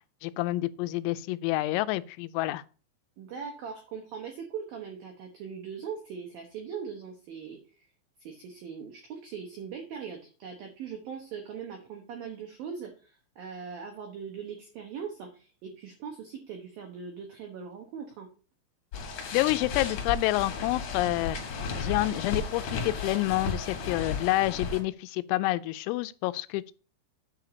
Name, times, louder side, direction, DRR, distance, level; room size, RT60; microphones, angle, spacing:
voice 1, 0.0-2.6 19.3-21.4 21.8-26.7, left 18 dB, 85° left, 3.2 m, -28 dB
voice 2, 3.2-7.6 8.2-18.3, right 6 dB, 85° right, 2.0 m, -40 dB
sound 1, 18.9-24.8, left 5 dB, 60° left, 2.0 m, -34 dB
9.2 x 3.9 x 6.7 m
omnidirectional pair, 5.9 m